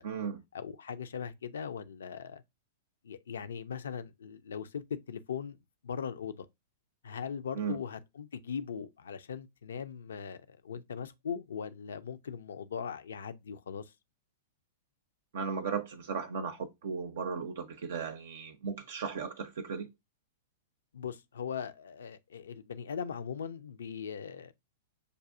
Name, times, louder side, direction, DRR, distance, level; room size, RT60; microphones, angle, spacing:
voice 1, 0.0-0.4 7.6-7.8 15.3-19.9, right 6 dB, 60° right, 0.5 m, -36 dB
voice 2, 0.5-2.4 3.0-5.6 5.8-6.5 7.0-13.9 20.9-24.5, left 7 dB, 65° left, 0.5 m, -39 dB
6.6 x 2.6 x 2.4 m
figure-of-eight pair, 105°, 0 cm